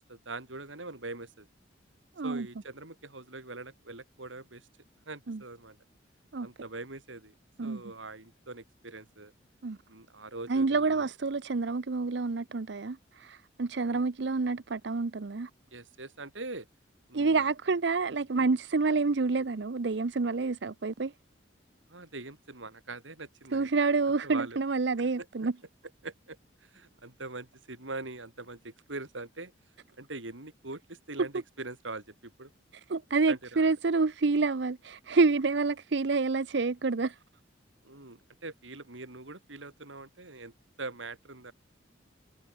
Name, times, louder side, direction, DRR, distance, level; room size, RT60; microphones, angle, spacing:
voice 1, 0.1-1.5 2.2-4.7 5.1-5.8 6.4-7.3 7.6-9.3 9.9-11.1 13.9-14.0 15.7-16.7 17.1-17.4 18.3-18.5 21.9-23.7 24.2-24.6 25.2-25.3 26.0-29.5 30.0-32.5 33.3-33.6 37.8-40.5 40.8-41.5, right 3 dB, 85° right, 3.6 m, -43 dB
voice 2, 10.5-15.5 17.1-21.1 23.5-25.5 32.9-37.2, right 4 dB, 65° right, 0.6 m, -28 dB
head